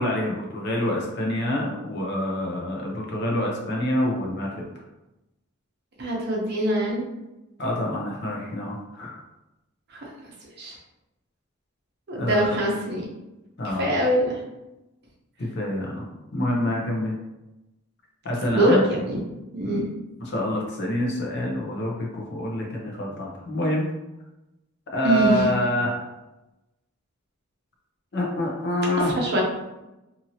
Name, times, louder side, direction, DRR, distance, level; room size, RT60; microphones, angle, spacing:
voice 1, 0.0-4.6 7.6-9.2 12.2-12.6 13.6-13.9 15.4-17.1 18.2-18.8 19.6-19.9 20.2-23.9 24.9-26.1 28.1-29.1, left 1 dB, 50° left, -1 dB, 0.7 m, -26 dB
voice 2, 6.0-7.0 9.9-10.0 10.6-10.7 12.1-13.0 13.8-14.4 18.5-19.2 19.5-19.8 25.0-25.5 29.0-29.4, right 1 dB, 50° right, -2 dB, 0.8 m, -23 dB
2.7 x 2.7 x 2.7 m, 0.97 s
head